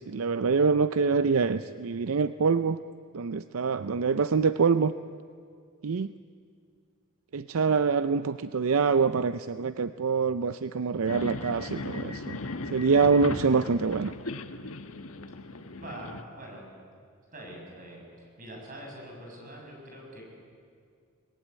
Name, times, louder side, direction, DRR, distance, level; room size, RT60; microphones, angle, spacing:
voice 1, 0.0-2.8 3.1-4.9 5.8-6.1 7.3-12.4 12.7-14.1, right 5 dB, 70° right, 12 dB, 0.5 m, -25 dB
sound 1, 11.1-16.2, left 2 dB, 80° left, 1.3 m, -37 dB
voice 2, 15.5-16.7 17.3-20.2, right 1 dB, 40° right, 0 dB, 7.0 m, -44 dB
23.5 x 20.5 x 9.5 m, 2.2 s
head